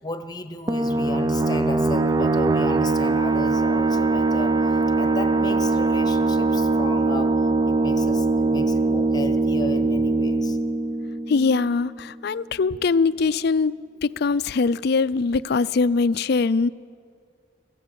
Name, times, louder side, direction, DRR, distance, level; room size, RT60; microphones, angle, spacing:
voice 1, 0.0-4.6 5.0-7.3 7.7-10.6, left 2 dB, 20° left, 10 dB, 1.0 m, -34 dB
sound 1, 0.7-12.0, right 3 dB, 20° right, 0.5 m, -22 dB
voice 2, 11.3-13.7 14.0-16.7, left 4 dB, 60° left, 16 dB, 0.4 m, -22 dB
22.5 x 15.0 x 8.1 m, 2.3 s
head